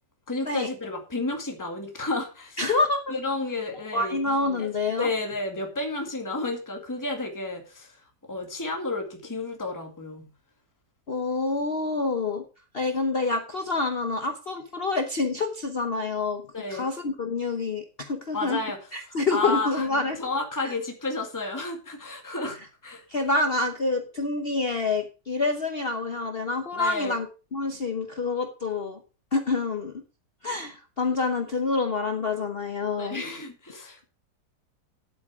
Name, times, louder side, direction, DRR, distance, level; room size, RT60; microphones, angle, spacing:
voice 1, 0.3-2.7 3.1-4.2 4.6-4.7 5.0-8.0 8.3-10.2 16.5-16.9 18.3-18.8 19.3-19.9 20.2-23.0 26.7-27.2 33.0-34.1, left 2 dB, 10° left, 3 dB, 2.0 m, -31 dB
voice 2, 2.6-3.1 3.9-5.1 11.1-12.4 12.7-16.4 16.7-18.6 18.9-20.2 20.6-20.7 23.1-27.3 27.5-29.0 29.3-29.9 30.4-33.2, left 3 dB, 40° left, 5 dB, 1.1 m, -27 dB
11.0 x 8.6 x 4.9 m, 0.34 s
omnidirectional pair, 1.8 m